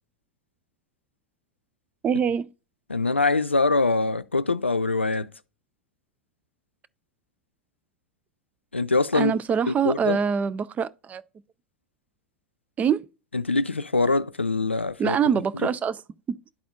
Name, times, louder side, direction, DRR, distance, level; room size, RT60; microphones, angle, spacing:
voice 1, 2.0-2.5 9.1-11.2 12.8-13.1 15.0-16.0, right 7 dB, 25° right, 0.4 m, -24 dB
voice 2, 2.9-5.3 8.7-9.4 9.7-10.2 13.3-15.2, left 3 dB, 90° left, 0.3 m, -23 dB
11.5 x 4.2 x 2.4 m
figure-of-eight pair, 85°, 6 cm